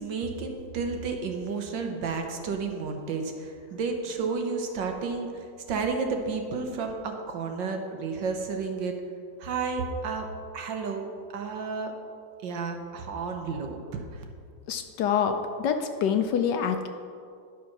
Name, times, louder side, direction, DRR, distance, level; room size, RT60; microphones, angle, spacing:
voice 1, 0.0-9.0 9.4-10.3 10.5-11.1 11.3-11.9 12.4-14.2, right 4 dB, 70° right, 3 dB, 1.7 m, -31 dB
voice 2, 14.7-16.9, left 7 dB, 70° left, 7 dB, 1.2 m, -26 dB
11.0 x 5.9 x 6.0 m, 2.3 s
omnidirectional pair, 2.1 m